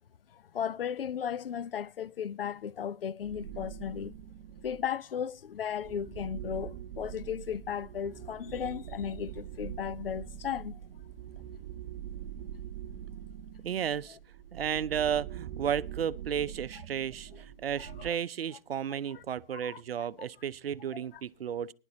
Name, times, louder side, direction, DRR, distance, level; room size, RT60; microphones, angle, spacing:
voice 1, 0.5-4.1 4.6-10.7 19.1-19.2 19.5-19.8, left 8 dB, 70° left, 0.6 m, -35 dB
sound 1, 3.2-4.9 5.5-18.1, right 10 dB, 25° right, 0.5 m, -44 dB
voice 2, 13.6-14.2 14.5-21.7, right 8 dB, 80° right, 0.6 m, -33 dB
19.5 x 11.0 x 2.8 m
hypercardioid pair, 140°, 29 cm